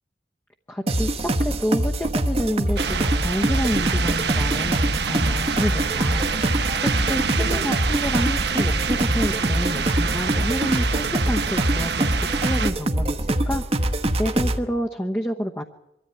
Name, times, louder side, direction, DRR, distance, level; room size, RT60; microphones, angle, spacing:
voice 1, 0.7-6.3 6.8-13.6 14.2-15.6, equal, 10° left, 1 dB, 0.9 m, -28 dB
sound 1, 0.9-14.6, right 1 dB, 35° right, 1.1 m, -24 dB
sound 2, 2.8-12.7, right 5 dB, 75° right, 1.1 m, -26 dB
23.5 x 14.0 x 9.7 m, 0.90 s
head